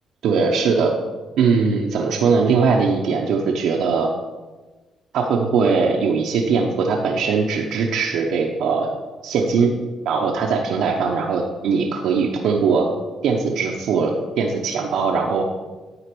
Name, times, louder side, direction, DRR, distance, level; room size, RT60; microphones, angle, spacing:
voice 1, 0.2-0.9 1.4-4.1 5.1-8.9 9.2-9.7 10.0-12.9 13.2-15.4, right 5 dB, 80° right, 0 dB, 0.8 m, -20 dB
9.9 x 4.1 x 6.1 m, 1.3 s
cardioid pair, 90°, 0 cm